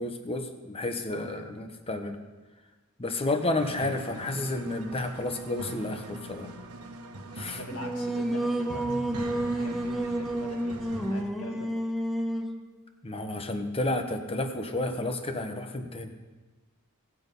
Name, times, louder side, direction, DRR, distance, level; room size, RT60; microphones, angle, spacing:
voice 1, 0.0-2.2 3.0-6.5 7.3-7.6 13.0-16.1, left 2 dB, 25° left, 6 dB, 1.0 m, -31 dB
sound 1, 3.6-11.2, right 1 dB, 90° right, 1.1 m, -41 dB
voice 2, 7.5-11.7, equal, 65° left, 1 dB, 2.1 m, -43 dB
Singing, 7.7-12.6, right 1 dB, ahead, 0.7 m, -30 dB
17.5 x 6.3 x 5.3 m, 1.3 s
head